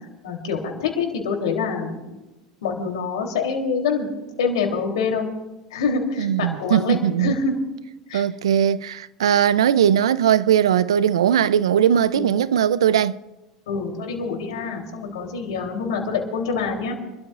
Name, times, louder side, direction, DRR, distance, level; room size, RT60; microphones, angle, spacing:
voice 1, 0.2-2.1 2.6-4.1 4.4-5.3 5.7-7.5 8.1-8.2 12.1-12.3 13.7-16.9, left 5 dB, 80° left, 3.4 m, -26 dB
voice 2, 6.2-7.4 8.1-13.2, right 9 dB, 85° right, 0.5 m, -19 dB
29.5 x 13.0 x 2.5 m
hypercardioid pair, 85°, 3 cm